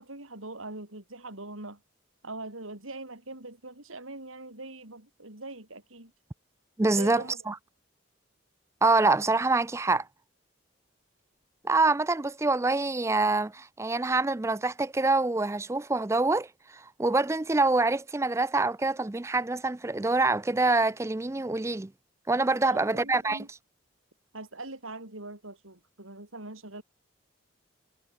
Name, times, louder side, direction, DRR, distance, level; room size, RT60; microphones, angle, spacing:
voice 1, 0.0-1.8 2.2-6.1 6.9-7.5 22.6-23.5 24.3-26.8, right 2 dB, 85° right, 5.6 m, -42 dB
voice 2, 6.8-7.5 8.8-10.1 11.6-21.9 22.3-23.4, right 3 dB, 15° right, 0.4 m, -25 dB
head